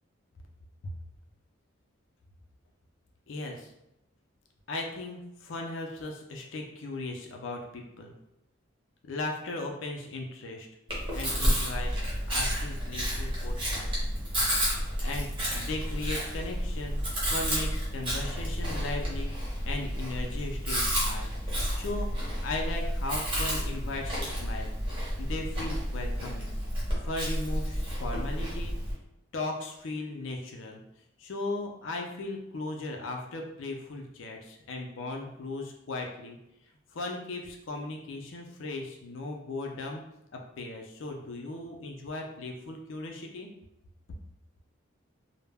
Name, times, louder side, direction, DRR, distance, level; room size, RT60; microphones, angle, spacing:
voice 1, 3.3-3.7 4.7-8.1 9.1-10.7 11.1-11.9 12.3-14.0 15.0-19.3 19.7-21.3 21.7-22.1 22.4-24.7 25.2-26.5 27.0-28.8 29.3-30.8 31.2-36.4 36.9-40.0 40.3-43.5, left 2 dB, 65° left, 1 dB, 0.4 m, -37 dB
Chewing mastication, 10.9-28.9, equal, 25° right, 0.7 m, -31 dB
2.2 x 2.0 x 3.3 m, 0.86 s
head